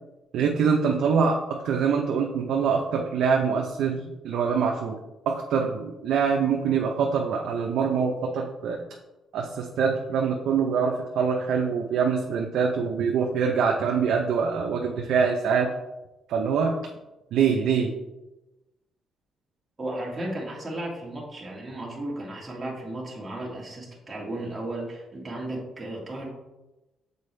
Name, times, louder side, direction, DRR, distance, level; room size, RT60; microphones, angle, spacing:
voice 1, 0.3-5.0 5.3-8.8 9.3-15.7 16.3-16.8 17.3-17.9, right 6 dB, 75° right, 1 dB, 0.6 m, -24 dB
voice 2, 19.8-26.3, right 1 dB, 25° right, -3 dB, 1.8 m, -34 dB
6.8 x 4.5 x 3.3 m, 1.0 s
cardioid pair, 90°, 0 cm